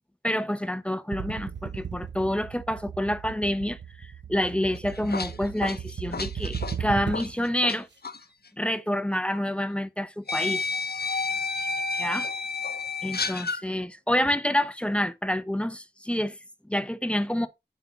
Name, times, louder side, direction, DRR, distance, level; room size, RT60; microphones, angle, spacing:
voice 1, 0.2-7.9 8.6-10.7 12.0-12.3 13.0-16.4 16.7-17.5, left 1 dB, 5° left, 0.8 m, -28 dB
sound 1, 1.1-7.5, right 7 dB, 85° right, 0.6 m, -36 dB
sound 2, 4.8-7.8 8.0-8.2 9.3-9.4 10.3-13.6, left 4 dB, 60° left, 0.7 m, -30 dB
9.4 x 4.3 x 3.9 m
wide cardioid pair, 55°, 18 cm